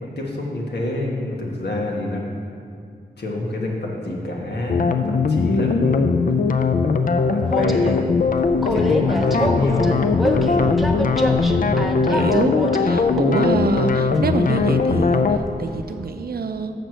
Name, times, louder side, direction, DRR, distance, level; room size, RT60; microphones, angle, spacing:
voice 1, 0.0-2.4 3.2-6.0 7.3-10.7, left 1 dB, 85° left, -2 dB, 1.4 m, -27 dB
sound 1, 4.7-15.4, left 4 dB, 55° left, 0.4 m, -20 dB
voice 2, 5.6-6.1 11.4-15.2 15.6-16.7, right 4 dB, 65° right, 8 dB, 0.5 m, -26 dB
Train, 7.4-16.1, right 1 dB, ahead, 0.6 m, -29 dB
6.6 x 6.2 x 6.3 m, 2.3 s
wide cardioid pair, 110°, 17 cm